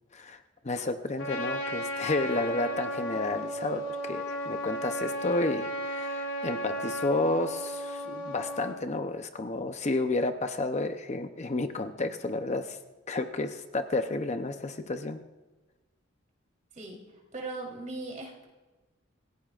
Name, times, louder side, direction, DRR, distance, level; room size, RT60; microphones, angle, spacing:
voice 1, 0.6-12.8 13.1-15.2, left 2 dB, 35° left, 7 dB, 0.7 m, -31 dB
Trumpet, 1.2-8.8, equal, 65° left, 2.8 m, -34 dB
voice 2, 17.3-18.5, right 2 dB, 40° right, -1 dB, 3.5 m, -38 dB
26.5 x 16.0 x 2.5 m, 1.2 s
head